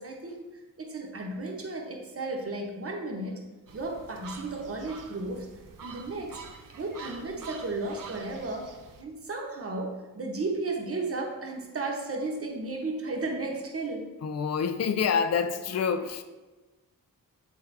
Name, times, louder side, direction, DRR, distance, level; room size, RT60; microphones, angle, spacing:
voice 1, 0.0-3.4 3.7-5.5 5.8-6.4 6.8-8.7 9.0-14.1, right 2 dB, 40° right, 1 dB, 1.0 m, -34 dB
sound 1, 3.7-9.0, right 5 dB, 65° right, 0.7 m, -46 dB
voice 2, 14.2-16.2, left 6 dB, 45° left, 8 dB, 0.4 m, -27 dB
8.3 x 3.4 x 3.3 m, 1.2 s
cardioid pair, 70°, 35 cm